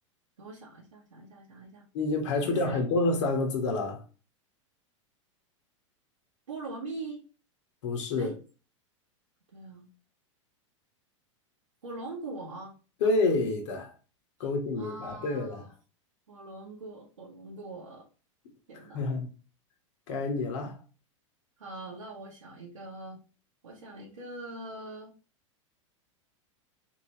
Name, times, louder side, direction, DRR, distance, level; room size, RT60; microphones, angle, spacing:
voice 1, 0.4-1.9 2.4-2.8 6.5-7.2 8.2-8.4 9.5-9.9 11.8-12.7 14.4-14.5 14.8-15.7 16.3-18.1 18.7-19.1 21.6-23.2 23.6-25.1, right 2 dB, 85° right, 1.1 m, -42 dB
voice 2, 1.9-4.0 7.8-8.3 13.0-13.9 14.4-15.6 18.9-19.3 20.1-20.8, left 3 dB, 65° left, 1.3 m, -28 dB
3.3 x 2.9 x 3.2 m
hypercardioid pair, 100°, 17 cm